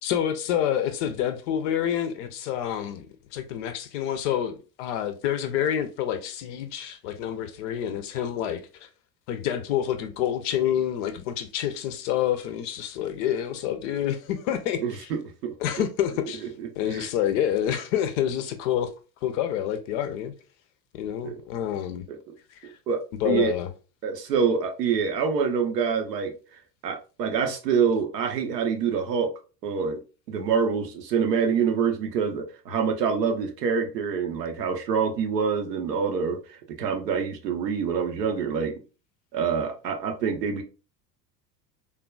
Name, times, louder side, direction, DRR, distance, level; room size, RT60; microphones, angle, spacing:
voice 1, 0.0-3.1 3.3-8.6 9.3-15.1 15.6-16.5 16.8-18.9 19.2-20.3 20.9-22.1 22.6-22.7 23.2-23.7, left 10 dB, 50° left, 0.5 m, -28 dB
voice 2, 14.8-15.5 16.4-17.1 21.2-21.4 22.1-22.3 22.6-23.6 24.0-26.3 26.8-29.3 29.6-30.0 30.3-38.8 39.3-40.6, right 6 dB, 70° right, 0.7 m, -26 dB
3.4 x 2.2 x 2.3 m
figure-of-eight pair, 70°, 50 cm